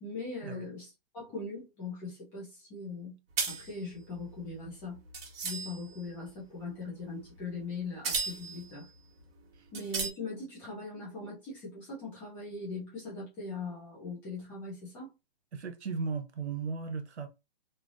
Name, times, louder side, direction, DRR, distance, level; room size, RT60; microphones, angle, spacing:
voice 1, 0.0-3.2 3.5-5.0 5.4-8.9 9.7-15.1, left 3 dB, 5° left, 0.4 m, -40 dB
sound 1, 3.4-6.0 7.4-7.6 8.0-8.8 9.2-9.3 9.7-10.1, right 5 dB, 65° right, 1.3 m, -35 dB
voice 2, 15.5-17.3, right 5 dB, 90° right, 0.9 m, -36 dB
3.2 x 2.4 x 2.5 m
hypercardioid pair, 145°, 33 cm